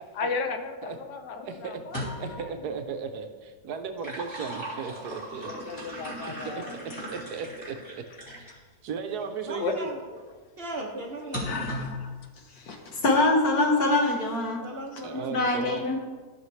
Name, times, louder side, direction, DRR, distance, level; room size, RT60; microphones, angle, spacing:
voice 1, 0.1-2.5 5.5-7.0 9.6-9.8 11.5-12.1, left 5 dB, 85° left, 7 dB, 1.4 m, -35 dB
voice 2, 1.4-1.8 2.2-5.5 6.3-6.5 7.0-7.8 8.8-9.9 15.0-15.8, right 6 dB, 75° right, 7 dB, 1.2 m, -35 dB
sound 1, 1.8-2.5 3.7-8.6 9.2-9.3 11.3-12.0, equal, 15° left, 2.9 m, -37 dB
voice 3, 9.5-10.0 10.6-11.5 14.6-15.7, right 1 dB, 45° right, 0 dB, 1.0 m, -37 dB
voice 4, 12.6-14.6 15.1-16.0, left 2 dB, 65° left, 1 dB, 1.8 m, -24 dB
14.0 x 5.8 x 3.2 m, 1.4 s
omnidirectional pair, 1.8 m